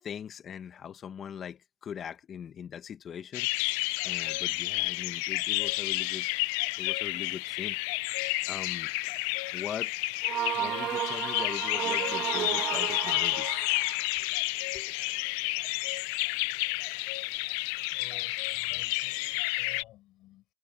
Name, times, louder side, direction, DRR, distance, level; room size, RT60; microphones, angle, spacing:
voice 1, 0.0-6.3 6.8-7.8 8.1-9.1 9.5-9.9 10.5-13.5 14.7-14.9, left 8 dB, 30° left, 1.6 m, -41 dB
sound 1, 3.3-19.8, left 25 dB, 65° left, 0.6 m, -31 dB
sound 2, 10.2-14.1, right 12 dB, 45° right, 0.7 m, -33 dB
voice 2, 17.8-20.5, left 16 dB, 50° left, 5.5 m, -54 dB
supercardioid pair, 120°, 0 cm